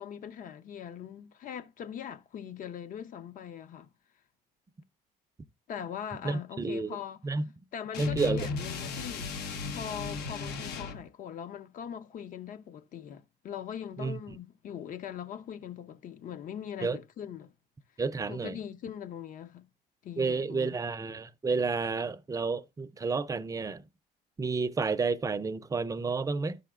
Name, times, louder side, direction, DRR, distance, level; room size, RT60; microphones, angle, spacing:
voice 1, 0.0-3.9 5.7-7.2 7.7-9.4 9.6-17.5 18.3-19.7 20.0-20.8, left 9 dB, 50° left, 0.7 m, -41 dB
voice 2, 6.2-7.0 7.2-7.5 8.0-8.5 14.0-14.2 16.8-17.0 18.0-18.6 20.2-23.8 24.4-26.6, right 4 dB, 20° right, 0.5 m, -30 dB
sound 1, 7.9-11.0, left 4 dB, 75° left, 1.0 m, -35 dB
12.5 x 5.7 x 2.4 m
cardioid pair, 110°, 17 cm